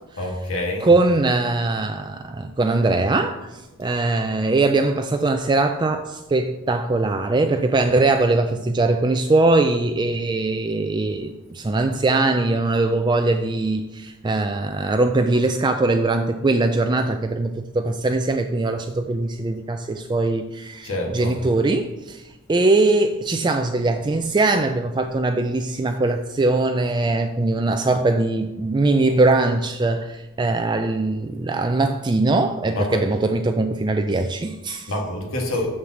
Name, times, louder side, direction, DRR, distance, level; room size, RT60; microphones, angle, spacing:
voice 1, 0.2-0.9 20.8-21.3 32.7-33.0 34.9-35.8, left 1 dB, 60° left, 1 dB, 1.7 m, -26 dB
voice 2, 0.8-34.9, right 2 dB, 20° right, 6 dB, 0.4 m, -21 dB
6.8 x 6.6 x 7.2 m, 1.1 s
head